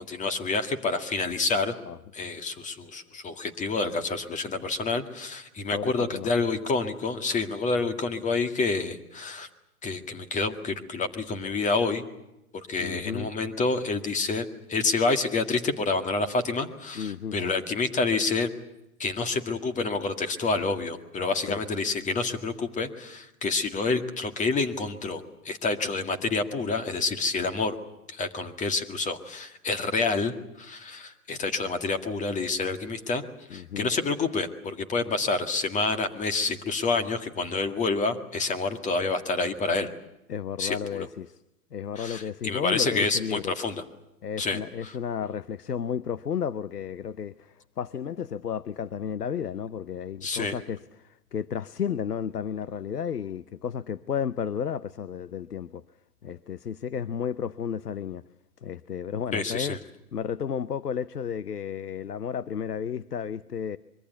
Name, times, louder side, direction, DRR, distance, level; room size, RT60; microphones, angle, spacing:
voice 1, 0.0-1.7 2.1-9.5 9.8-12.0 12.5-18.5 19.0-27.8 28.1-33.2 33.5-39.9 40.6-41.1 42.0-43.8 44.4-44.9 50.2-50.5 59.3-59.8, left 3 dB, 15° left, 1.9 m, -28 dB
voice 2, 5.7-6.3 12.8-13.3 16.9-17.4 21.5-21.6 33.5-33.9 40.3-41.4 41.7-43.5 44.2-55.8 56.2-58.2 58.6-59.8 60.1-63.8, left 8 dB, 90° left, 0.8 m, -32 dB
25.0 x 23.0 x 8.2 m
hypercardioid pair, 120°, 45 cm